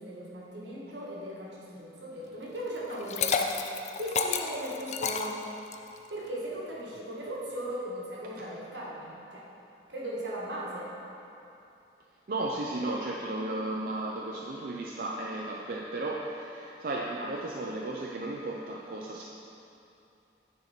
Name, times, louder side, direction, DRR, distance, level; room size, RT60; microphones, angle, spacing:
voice 1, 0.0-3.5 4.0-5.4 6.1-9.4 9.9-10.9, right 1 dB, 80° right, -5 dB, 1.6 m, -38 dB
Liquid, 2.9-6.0, left 6 dB, 40° left, 0.3 m, -30 dB
voice 2, 12.3-19.2, right 2 dB, 50° right, -2 dB, 0.4 m, -34 dB
9.5 x 4.4 x 4.3 m, 2.8 s
head